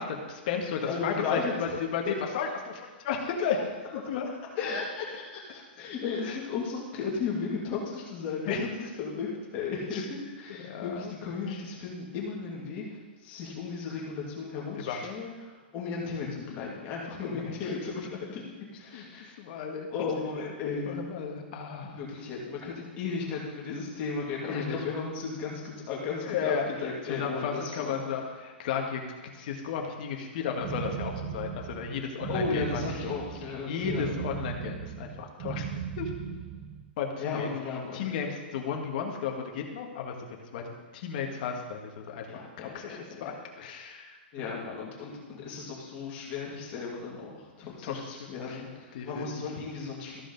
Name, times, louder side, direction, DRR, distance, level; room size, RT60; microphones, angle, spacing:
voice 1, 0.0-3.6 3.9-4.2 6.2-6.4 8.5-8.6 9.9-10.0 10.6-11.1 11.4-11.6 14.7-15.0 17.3-17.4 18.9-19.0 19.4-19.9 20.8-22.0 22.7-22.8 24.4-24.8 26.1-26.7 27.0-29.0 29.3-32.8 33.7-36.1 37.0-37.5 37.9-40.6 40.9-44.5 47.6-48.0 48.4-48.6 48.9-49.5, left 6 dB, 45° left, 2 dB, 1.5 m, -34 dB
voice 2, 0.8-1.8 2.1-2.2 3.5-3.6 4.6-18.4 18.7-19.4 19.9-21.0 21.8-28.0 32.3-34.1 37.2-38.1 42.3-42.8 44.3-50.2, left 5 dB, 30° left, -3 dB, 2.2 m, -35 dB
sound 1, 30.6-36.9, right 8 dB, 30° right, 0.5 m, -37 dB
14.0 x 5.0 x 3.9 m, 1.3 s
hypercardioid pair, 155°, 6 cm